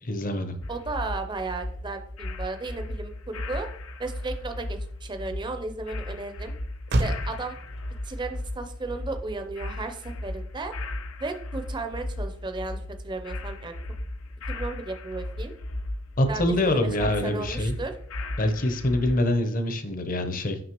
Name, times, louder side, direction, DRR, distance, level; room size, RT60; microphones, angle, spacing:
voice 1, 0.0-0.6 16.2-17.7 18.4-20.6, left 1 dB, 40° left, 8 dB, 0.8 m, -25 dB
sound 1, 0.6-19.3, left 1 dB, 85° left, 0.7 m, -36 dB
voice 2, 0.7-3.7 4.0-6.5 7.0-7.6 8.0-10.7 11.2-12.8 13.0-13.8 14.5-15.5 16.3-17.9, right 3 dB, 20° right, 7 dB, 0.5 m, -34 dB
Motor vehicle (road), 3.7-11.4, right 1 dB, 55° right, 0.7 m, -36 dB
6.0 x 5.6 x 3.0 m, 0.62 s
head